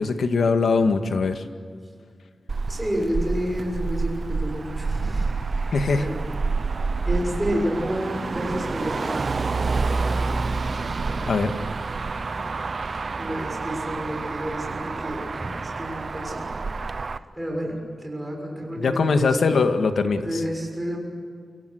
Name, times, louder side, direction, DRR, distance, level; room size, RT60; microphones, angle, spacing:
voice 1, 0.0-1.4 5.7-6.1 11.3-11.5 18.8-20.4, left 4 dB, 75° left, 7 dB, 1.9 m, -21 dB
Motor vehicle (road), 2.5-17.2, right 4 dB, 45° right, 0.7 m, -28 dB
voice 2, 2.7-5.3 6.0-6.2 7.0-9.5 11.1-11.3 13.2-16.8 17.1-19.4 20.2-21.0, equal, 5° right, 0 dB, 6.6 m, -30 dB
29.0 x 25.0 x 6.5 m, 2.1 s
wide cardioid pair, 160°, 0 cm